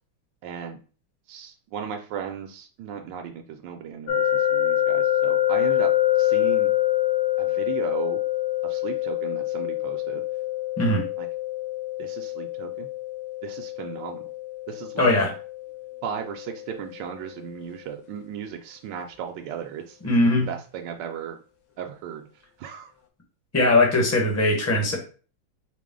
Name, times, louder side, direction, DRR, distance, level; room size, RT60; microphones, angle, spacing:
voice 1, 0.4-0.8 1.3-5.9 6.2-6.7 7.4-8.2 8.6-10.2 11.2-11.3 12.0-12.9 13.4-14.2 14.7-15.1 16.0-20.1 20.5-21.4 21.8-22.3 22.6-22.9, right 8 dB, 75° right, 4 dB, 1.1 m, -36 dB
sound 1, 4.1-17.0, left 13 dB, 80° left, 1.4 m, -26 dB
voice 2, 15.0-15.3 20.0-20.5 23.5-25.0, left 2 dB, 15° left, -1 dB, 0.5 m, -20 dB
4.7 x 2.0 x 3.6 m, 0.38 s
omnidirectional pair, 2.1 m